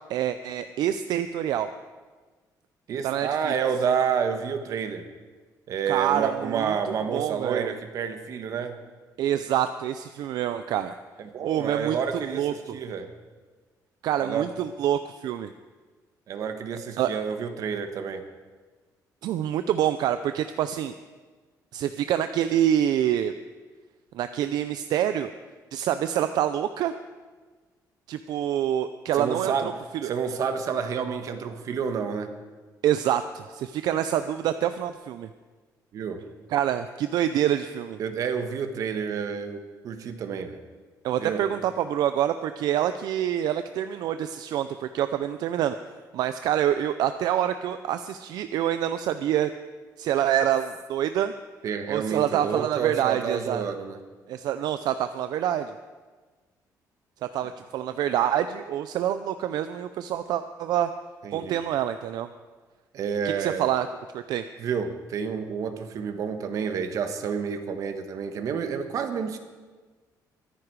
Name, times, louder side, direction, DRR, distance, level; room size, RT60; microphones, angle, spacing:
voice 1, 0.1-1.7 3.0-3.5 5.9-6.8 7.1-7.7 9.2-10.9 11.4-12.8 14.0-15.5 17.0-17.1 19.2-20.9 21.7-23.3 24.1-25.3 25.7-26.9 28.1-29.5 29.9-30.1 32.8-35.3 36.5-38.0 41.0-45.8 46.1-49.5 50.0-51.3 51.9-53.6 54.3-55.8 57.3-60.9 61.3-62.3 63.4-63.9 64.1-64.4, right 10 dB, 75° right, 11 dB, 0.5 m, -26 dB
voice 2, 2.9-5.0 5.7-8.8 11.2-13.1 14.2-14.5 16.3-18.3 29.1-32.3 35.9-36.2 38.0-40.6 41.2-41.4 51.6-54.0 61.2-61.6 62.9-63.7 64.6-69.4, right 6 dB, 55° right, 7 dB, 1.4 m, -29 dB
23.5 x 9.9 x 4.8 m, 1.4 s
cardioid pair, 165°, 7 cm